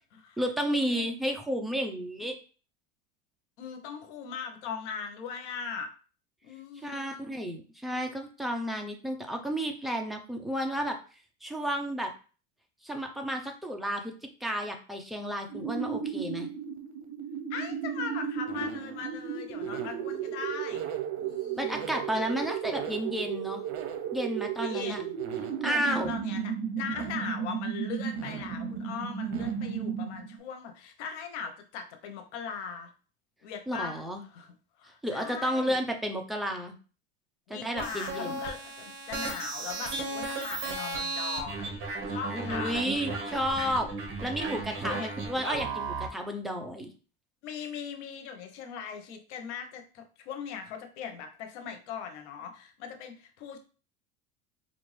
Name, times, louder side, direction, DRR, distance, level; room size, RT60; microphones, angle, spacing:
voice 1, 0.4-2.4 6.8-11.0 11.4-12.1 12.8-14.1 14.4-16.5 21.5-23.6 24.1-25.0 25.6-26.1 33.7-34.2 35.0-36.7 37.5-38.4 42.3-43.9 44.2-46.9, equal, ahead, 3 dB, 0.5 m, -32 dB
voice 2, 3.6-5.9 6.4-7.4 17.5-20.8 21.2-21.9 24.6-32.9 33.4-35.8 37.5-41.8 42.1-42.8 44.8-45.1 47.4-53.6, left 6 dB, 80° left, 5 dB, 0.9 m, -40 dB
sound 1, 15.5-30.4, right 8 dB, 65° right, 0.8 m, -34 dB
sound 2, 37.8-46.1, right 3 dB, 35° right, 1.4 m, -35 dB
4.3 x 2.5 x 3.2 m, 0.36 s
supercardioid pair, 125°, 34 cm